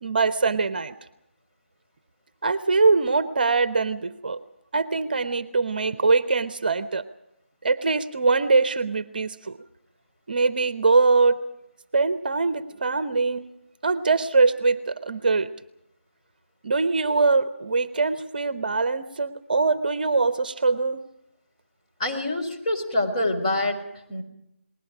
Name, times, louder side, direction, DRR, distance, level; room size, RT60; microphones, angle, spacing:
voice 1, 0.0-0.9 2.4-4.4 4.7-7.0 7.6-9.6 10.3-11.4 11.9-13.4 13.8-15.5 16.6-21.0, right 4 dB, 45° right, 13 dB, 0.9 m, -22 dB
voice 2, 22.0-24.2, left 1 dB, 30° left, 1 dB, 4.4 m, -26 dB
29.5 x 20.5 x 5.0 m, 0.83 s
figure-of-eight pair, 160°, 7 cm